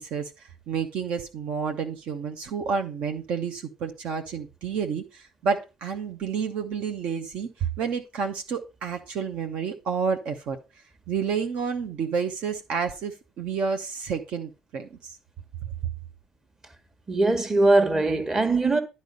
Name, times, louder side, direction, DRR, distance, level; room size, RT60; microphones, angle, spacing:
voice 1, 0.0-10.6 11.1-15.2, right 6 dB, 55° right, 0.8 m, -30 dB
voice 2, 17.1-18.8, right 2 dB, 20° right, 1.3 m, -21 dB
10.5 x 4.2 x 5.1 m
figure-of-eight pair, 55°, 2 cm